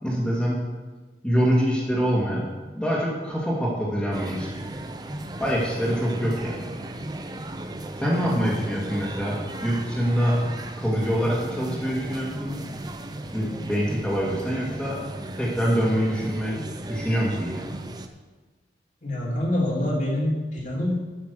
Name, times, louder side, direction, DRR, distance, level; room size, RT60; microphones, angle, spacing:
voice 1, 0.0-0.6 1.2-2.4 2.7-4.5 5.4-6.7 8.0-10.5 10.8-12.6 13.3-15.0 15.4-16.5 16.9-17.7, equal, 5° left, -6 dB, 2.0 m, -25 dB
sound 1, 4.1-18.1, right 1 dB, 20° right, 0.6 m, -36 dB
voice 2, 8.1-8.6 19.0-20.9, left 1 dB, 45° left, -4 dB, 2.6 m, -26 dB
13.0 x 5.9 x 6.4 m, 1.3 s
head